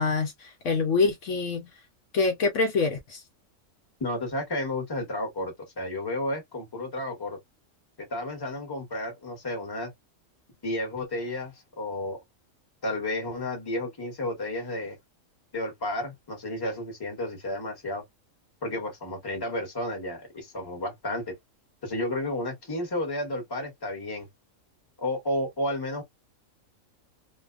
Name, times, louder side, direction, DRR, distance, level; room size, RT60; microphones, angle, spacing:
voice 1, 0.0-1.7 2.1-3.2, left 4 dB, 65° left, 0.9 m, -25 dB
voice 2, 4.0-7.4 8.0-9.9 10.6-12.2 12.8-15.0 15.5-18.0 18.6-21.3 21.8-24.3 25.0-26.0, left 1 dB, 20° left, 0.9 m, -32 dB
2.5 x 2.2 x 2.3 m
omnidirectional pair, 1.4 m